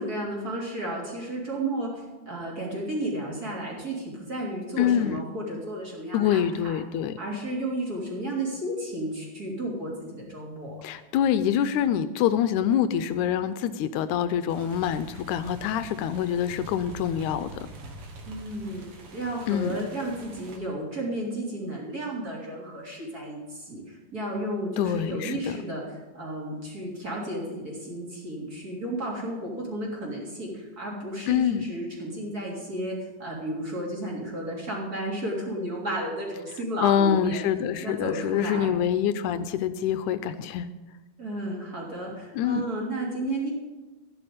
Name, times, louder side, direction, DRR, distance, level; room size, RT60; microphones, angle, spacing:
voice 1, 0.0-6.8 7.2-10.8 18.2-37.4 37.8-38.8 41.2-43.5, right 1 dB, 30° right, -3 dB, 3.5 m, -33 dB
voice 2, 4.8-5.2 6.1-7.1 10.8-17.7 19.5-19.8 24.8-25.6 31.3-31.6 36.8-40.7 42.4-42.6, left 9 dB, 80° left, 12 dB, 1.9 m, -25 dB
sound 1, 14.5-20.6, right 2 dB, 50° right, 2.2 m, -44 dB
13.5 x 10.5 x 5.1 m, 1.2 s
omnidirectional pair, 3.7 m